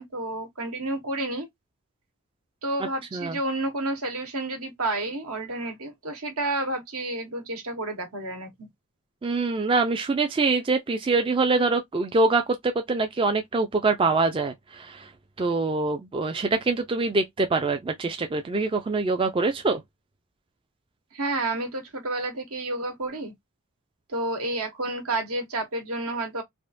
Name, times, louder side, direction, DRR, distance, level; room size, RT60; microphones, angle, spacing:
voice 1, 0.0-1.5 2.6-8.7 21.1-23.3 24.1-26.4, right 2 dB, 75° right, 1.3 m, -30 dB
voice 2, 9.2-15.1 15.4-19.8, right 3 dB, 25° right, 0.4 m, -24 dB
3.5 x 2.4 x 2.5 m
head